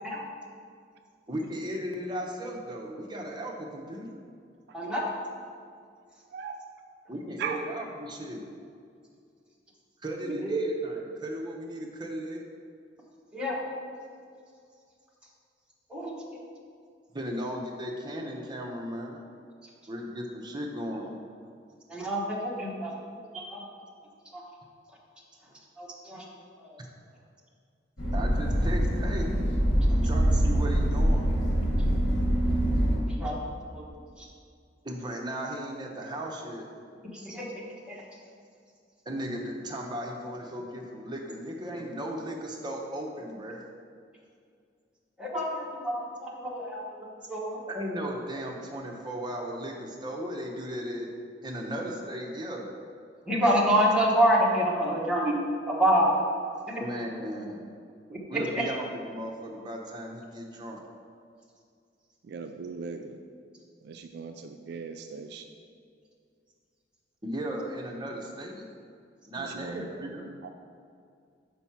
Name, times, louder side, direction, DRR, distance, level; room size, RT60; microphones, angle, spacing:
voice 1, 1.3-4.1 7.1-8.4 10.0-12.4 17.1-19.2 19.9-21.1 26.8-26.9 28.1-29.3 29.9-31.3 34.8-36.7 39.1-43.6 47.7-51.1 51.4-52.7 56.8-57.6 58.3-60.8 67.2-68.6 69.2-70.3, equal, 25° right, 0 dB, 0.7 m, -36 dB
voice 2, 4.7-5.1 10.5-10.6 13.3-13.6 15.9-16.1 21.9-22.9 23.3-23.6 24.3-24.4 25.8-26.2 33.1-33.3 33.7-33.8 34.2-34.3 37.1-37.5 37.9-38.0 45.2-46.9 47.3-47.6 53.3-55.3 55.7-56.1 58.1-58.2 58.5-58.7, equal, 5° right, -4 dB, 1.0 m, -26 dB
voice 3, 6.3-6.6 7.4-7.6 62.2-63.2 63.8-65.5 69.4-70.1 70.4-70.5, right 5 dB, 60° right, 6 dB, 0.3 m, -39 dB
sound 1, 28.0-33.0, right 1 dB, 85° left, 1.7 m, -24 dB
6.0 x 4.6 x 5.6 m, 2.3 s
head